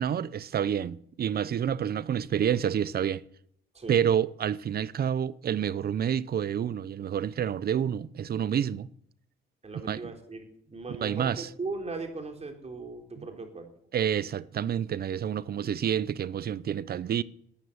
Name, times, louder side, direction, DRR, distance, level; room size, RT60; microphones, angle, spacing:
voice 1, 0.0-3.2 3.9-8.9 9.8-10.1 11.0-11.5 13.2-13.3 13.9-17.2, right 9 dB, 50° right, 0.7 m, -28 dB
voice 2, 9.6-13.7, right 3 dB, 30° right, 3.9 m, -38 dB
14.0 x 9.2 x 9.7 m
cardioid pair, 90°, 20 cm